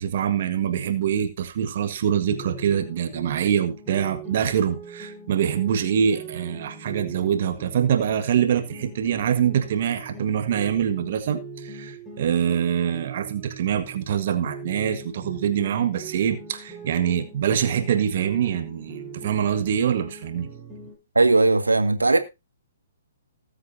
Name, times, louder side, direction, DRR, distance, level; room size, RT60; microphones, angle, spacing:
voice 1, 0.0-20.5, right 8 dB, 50° right, 1.6 m, -24 dB
sound 1, 2.3-14.1 14.4-21.0, right 3 dB, 5° left, 7.6 m, -41 dB
voice 2, 21.2-22.2, right 3 dB, 85° right, 1.8 m, -18 dB
20.0 x 8.0 x 2.7 m
figure-of-eight pair, 125°, 0 cm